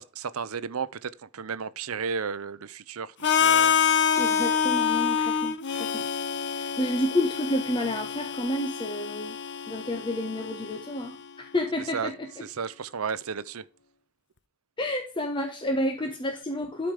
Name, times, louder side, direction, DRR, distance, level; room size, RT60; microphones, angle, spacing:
voice 1, 0.0-3.8 11.9-12.1 12.4-13.7, right 6 dB, 75° right, 0.7 m, -33 dB
Harmonica, 3.2-11.1, left 7 dB, 55° left, 0.8 m, -27 dB
voice 2, 4.2-6.1 6.5-9.4 9.7-12.4 14.8-16.9, left 1 dB, 20° left, 1.1 m, -30 dB
12.0 x 5.0 x 4.9 m
head